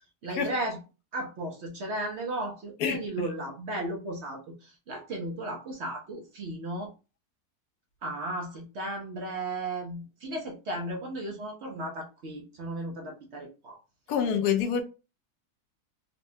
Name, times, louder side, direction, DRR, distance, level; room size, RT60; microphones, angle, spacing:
voice 1, 0.2-0.8 1.1-6.9 8.0-13.8, right 1 dB, 60° right, 0.8 m, -35 dB
voice 2, 14.1-14.8, left 7 dB, 80° left, 1.1 m, -26 dB
4.1 x 2.2 x 2.6 m
omnidirectional pair, 1.7 m